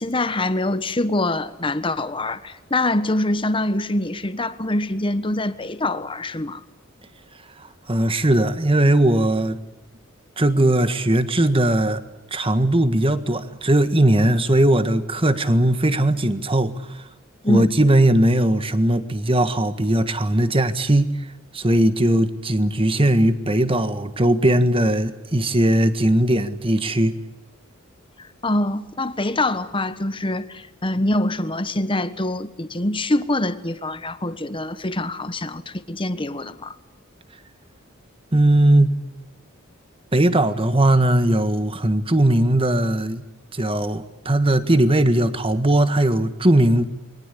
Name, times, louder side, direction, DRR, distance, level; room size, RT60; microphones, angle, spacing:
voice 1, 0.0-6.6 17.4-17.7 28.4-36.7, left 1 dB, 25° left, 1.3 m, -24 dB
voice 2, 7.9-9.6 10.4-12.0 12.3-17.0 17.5-21.1 21.5-27.1 38.3-39.0 40.1-43.2 43.5-46.8, right 1 dB, 25° right, 1.6 m, -19 dB
28.5 x 23.5 x 8.3 m
head